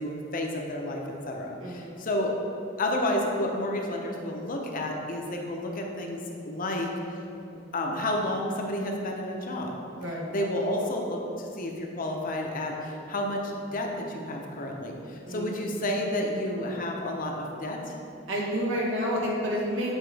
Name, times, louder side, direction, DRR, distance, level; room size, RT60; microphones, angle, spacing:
voice 1, 0.0-2.3 2.8-6.9 7.7-9.8 10.3-17.9, left 1 dB, 45° left, 1 dB, 0.7 m, -31 dB
voice 2, 1.6-1.9 7.4-7.7 9.9-10.3 15.2-16.1 18.3-19.9, equal, 90° right, -4 dB, 1.4 m, -31 dB
8.0 x 4.3 x 3.3 m, 2.6 s
head